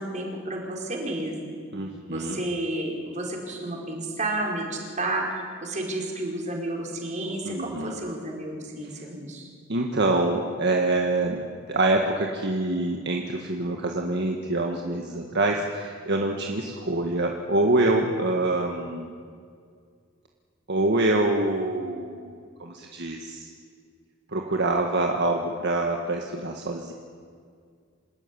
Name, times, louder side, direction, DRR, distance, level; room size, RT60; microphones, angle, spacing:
voice 1, 0.0-1.5 2.1-9.5, right 1 dB, 40° right, 0 dB, 4.8 m, -31 dB
voice 2, 1.7-2.4 7.4-8.0 9.7-11.4 11.7-19.1 20.7-23.5 24.3-26.9, right 2 dB, 60° right, 1 dB, 1.7 m, -25 dB
27.0 x 13.0 x 9.9 m, 2.1 s
head